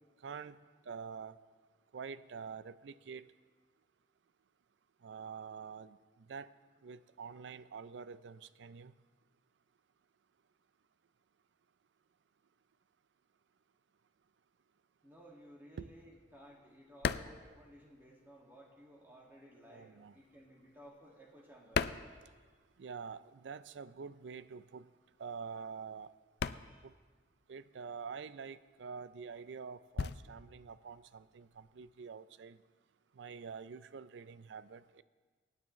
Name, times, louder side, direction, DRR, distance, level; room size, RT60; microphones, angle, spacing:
voice 1, 0.2-0.6 0.9-1.3 1.9-3.2 5.0-6.0 6.3-6.5 6.8-8.9 15.8-15.9 19.7-20.2 22.8-24.9 25.2-26.1 26.8-26.9 27.5-32.6 33.2-35.0, right 5 dB, 75° right, 15 dB, 0.4 m, -46 dB
voice 2, 15.0-22.3 26.6-26.8, equal, 10° right, -2 dB, 1.9 m, -58 dB
sound 1, 15.2-18.6 18.8-23.0 23.2-32.0, left 6 dB, 60° left, 0.4 m, -41 dB
24.0 x 9.6 x 3.1 m, 1.5 s
head